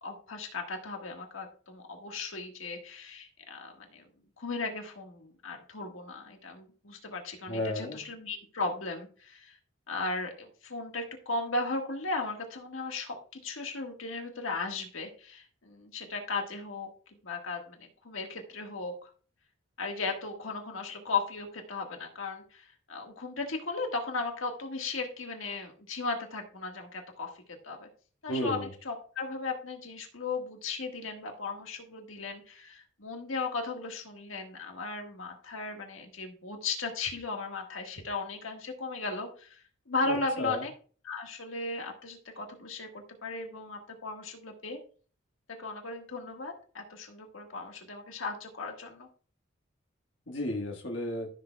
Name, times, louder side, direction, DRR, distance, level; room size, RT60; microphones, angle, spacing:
voice 1, 0.0-4.1 4.4-9.6 9.9-13.2 13.4-16.9 17.2-19.1 19.8-27.3 27.6-27.9 28.2-40.7 41.0-44.8 45.6-49.1, left 3 dB, 85° left, 3 dB, 1.6 m, -36 dB
voice 2, 7.5-8.0 28.3-28.7 40.0-40.6 50.3-51.3, left 1 dB, 65° left, 1 dB, 1.5 m, -33 dB
14.5 x 6.7 x 2.3 m, 0.41 s
head